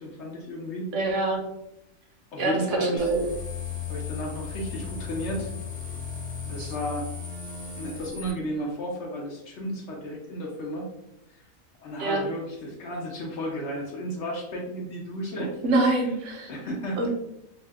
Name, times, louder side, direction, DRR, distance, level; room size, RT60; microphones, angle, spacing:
voice 1, 0.0-0.9 2.3-3.1 3.9-5.5 6.4-7.1 7.8-10.9 11.8-15.5 16.0-16.2 16.5-17.1, equal, 60° left, -1 dB, 0.8 m, -33 dB
voice 2, 0.9-1.4 2.4-3.2 6.6-6.7 12.0-12.2 15.6-16.5 17.0-17.1, right 2 dB, 65° right, 1 dB, 0.8 m, -25 dB
sound 1, 3.0-8.3, left 6 dB, 10° left, 0.6 m, -36 dB
2.6 x 2.4 x 3.3 m, 0.84 s
omnidirectional pair, 1.5 m